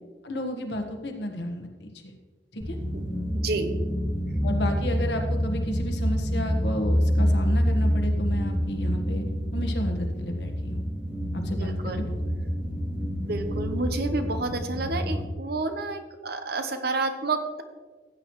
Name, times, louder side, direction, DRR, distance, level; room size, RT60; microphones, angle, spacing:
voice 1, 0.2-2.1 2.5-2.8 4.4-9.2 9.5-10.8 11.3-12.1, equal, 65° left, 3 dB, 1.5 m, -32 dB
sound 1, 2.6-15.3, equal, 5° right, 1.6 m, -27 dB
voice 2, 3.3-3.7 11.4-12.1 13.2-17.6, right 3 dB, 60° right, 7 dB, 1.0 m, -30 dB
15.5 x 8.8 x 3.2 m, 1.3 s
head